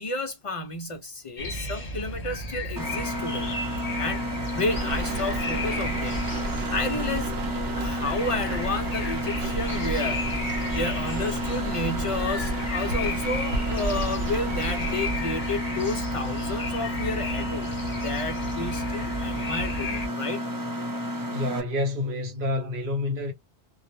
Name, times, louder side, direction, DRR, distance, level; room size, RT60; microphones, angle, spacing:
voice 1, 0.0-3.5 4.0-4.3 4.5-7.4 7.7-10.3 10.7-17.7 18.0-20.4, left 2 dB, 60° left, 0.3 m, -31 dB
sound 1, 1.4-20.1, left 1 dB, 40° left, 0.7 m, -34 dB
Mechanisms, 2.8-21.6, equal, 30° right, 0.4 m, -32 dB
sound 2, 4.7-15.7, right 3 dB, 75° right, 0.8 m, -33 dB
voice 2, 21.3-23.3, left 2 dB, 55° right, 1.0 m, -28 dB
2.3 x 2.0 x 2.9 m
omnidirectional pair, 1.1 m